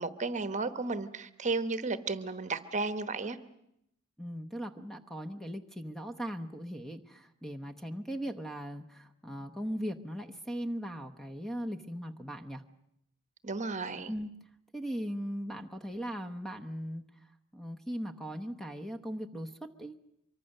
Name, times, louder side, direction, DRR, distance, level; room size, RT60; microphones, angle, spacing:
voice 1, 0.0-3.4 13.4-14.1, right 3 dB, 35° right, 12 dB, 1.1 m, -33 dB
voice 2, 4.2-12.6 14.1-14.3 14.7-17.0 17.5-20.0, equal, ahead, 7 dB, 0.9 m, -39 dB
24.5 x 23.5 x 6.6 m, 0.77 s
head